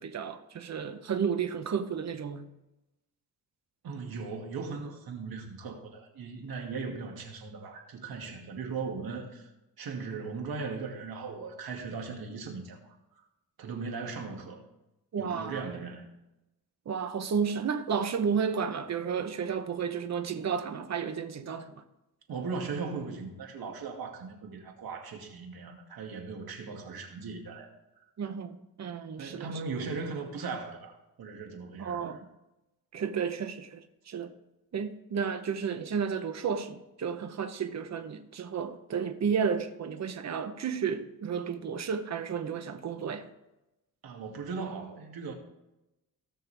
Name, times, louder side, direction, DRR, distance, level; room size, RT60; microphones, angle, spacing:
voice 1, 0.0-2.5 15.1-15.6 16.9-21.8 28.2-29.5 31.8-32.2 32.9-33.8 34.1-34.3 34.7-43.2, right 6 dB, 45° right, 0.9 m, -32 dB
voice 2, 3.8-9.5 9.8-12.9 13.6-14.6 15.2-16.1 22.3-27.7 29.2-30.9 31.2-32.1 44.0-45.3, right 4 dB, 70° right, 2.2 m, -38 dB
17.0 x 6.6 x 3.4 m
cardioid pair, 120°, 37 cm